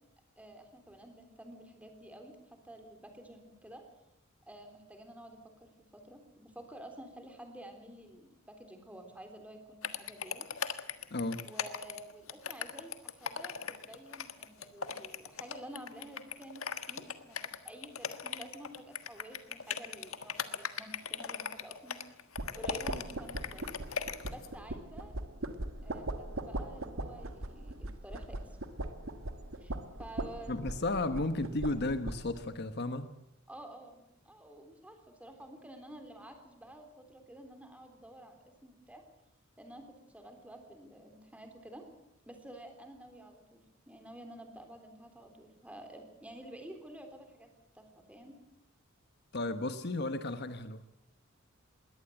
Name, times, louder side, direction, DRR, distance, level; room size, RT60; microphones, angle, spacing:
voice 1, 0.4-3.8 4.5-10.4 11.4-22.0 22.5-24.0 24.3-25.1 25.8-28.5 29.6-29.7 30.0-30.7 33.5-39.0 39.6-39.9 40.1-41.8 42.3-47.5 47.7-48.4, right 1 dB, 5° right, 5 dB, 3.6 m, -50 dB
sound 1, 9.8-24.5, left 7 dB, 90° left, 1.5 m, -38 dB
voice 2, 11.1-11.4 30.5-33.1 49.3-50.8, left 2 dB, 55° left, 10 dB, 1.2 m, -34 dB
sound 2, 22.4-32.4, right 1 dB, 85° right, 1.7 m, -40 dB
21.5 x 17.5 x 7.9 m, 0.85 s
head